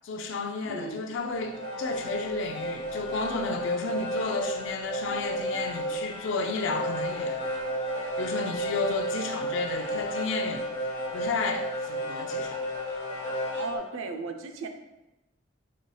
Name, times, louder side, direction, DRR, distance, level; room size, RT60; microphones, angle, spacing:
voice 1, 0.0-7.4 8.2-10.7 11.1-12.6, left 4 dB, 70° left, 0.4 m, -32 dB
voice 2, 0.6-1.0 13.5-14.7, right 3 dB, 80° right, 0.4 m, -35 dB
sound 1, 1.2-13.8, equal, 35° left, 1.3 m, -33 dB
4.1 x 3.2 x 2.2 m
head